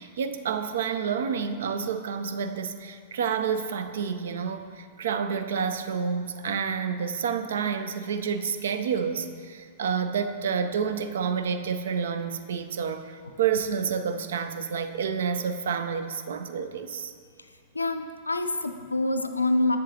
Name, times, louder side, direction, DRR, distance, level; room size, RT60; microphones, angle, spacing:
voice 1, 0.0-17.1, right 6 dB, 65° right, 9 dB, 0.4 m, -29 dB
voice 2, 17.7-19.8, left 2 dB, 85° left, 8 dB, 0.4 m, -26 dB
7.8 x 7.1 x 2.7 m, 2.1 s
figure-of-eight pair, 100°, 0 cm